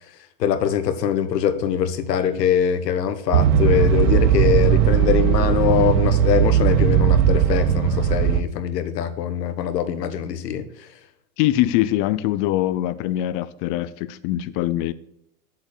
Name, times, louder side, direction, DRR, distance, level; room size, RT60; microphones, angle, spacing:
voice 1, 0.4-10.9, left 9 dB, 85° left, 1.4 m, -22 dB
sound 1, 3.3-8.4, right 10 dB, 70° right, 1.0 m, -18 dB
voice 2, 11.4-14.9, left 14 dB, 40° left, 0.7 m, -23 dB
7.9 x 7.4 x 6.8 m
hypercardioid pair, 125°, 48 cm